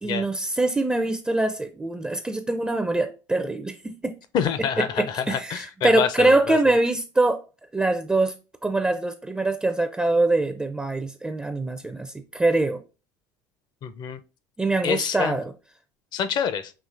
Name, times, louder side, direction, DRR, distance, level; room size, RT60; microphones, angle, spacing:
voice 1, 0.0-4.1 4.8-7.4 7.7-8.3 8.6-12.8 14.6-15.5, right 2 dB, 10° right, 0.4 m, -24 dB
voice 2, 4.3-6.6 13.8-14.2 14.8-15.4 16.1-16.7, left 7 dB, 50° left, 0.5 m, -27 dB
5.7 x 2.8 x 2.5 m
hypercardioid pair, 80°, 9 cm